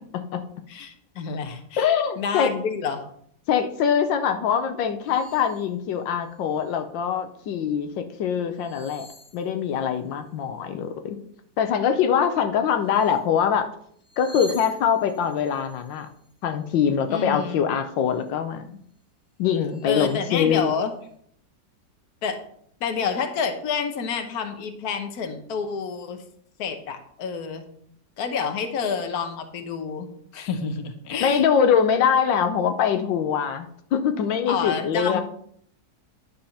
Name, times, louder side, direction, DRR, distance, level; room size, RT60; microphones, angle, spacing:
voice 1, 0.7-1.9 2.2-3.1 17.1-17.7 19.8-20.9 22.2-22.4 22.8-26.2 26.6-27.7 28.2-31.5 34.5-35.2, left 6 dB, 60° left, 7 dB, 1.4 m, -29 dB
voice 2, 1.8-2.5 3.5-9.1 9.3-11.2 11.6-13.7 14.2-16.1 16.4-18.7 19.4-20.7 31.2-35.2, left 7 dB, 85° left, 7 dB, 1.5 m, -23 dB
sound 1, 5.0-5.7 6.2-6.8 8.5-10.1 12.8-13.3 13.9-17.4 17.8-18.3 18.9-19.0 19.5-20.3, right 1 dB, 25° left, 1.3 m, -48 dB
11.0 x 4.4 x 5.7 m, 0.65 s
omnidirectional pair, 2.0 m